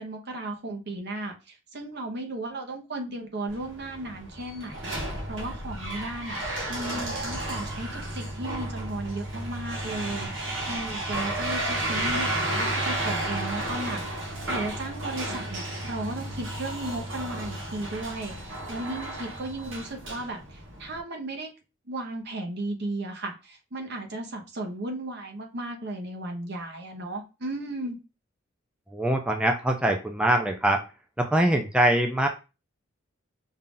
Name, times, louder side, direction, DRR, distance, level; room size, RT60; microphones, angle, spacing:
voice 1, 0.0-1.3 1.7-6.4 6.7-20.4 20.8-21.5 21.9-28.0, right 2 dB, 60° right, 2 dB, 1.0 m, -35 dB
sound 1, 3.5-21.0, right 1 dB, 75° right, 1.3 m, -32 dB
voice 2, 28.9-30.8 31.2-32.3, right 1 dB, 5° right, 3 dB, 0.4 m, -23 dB
5.5 x 2.4 x 3.8 m, 0.30 s
head